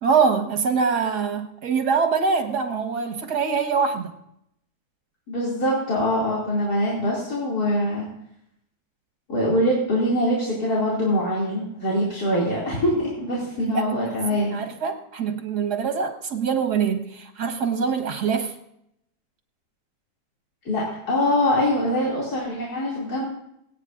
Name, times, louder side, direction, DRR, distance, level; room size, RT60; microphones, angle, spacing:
voice 1, 0.0-4.1 13.6-14.2 14.5-18.5, right 5 dB, 85° right, 6 dB, 2.1 m, -24 dB
voice 2, 5.3-8.1 9.3-14.6 20.6-23.2, left 1 dB, 75° left, -6 dB, 3.2 m, -23 dB
25.5 x 9.2 x 2.6 m, 0.77 s
omnidirectional pair, 1.7 m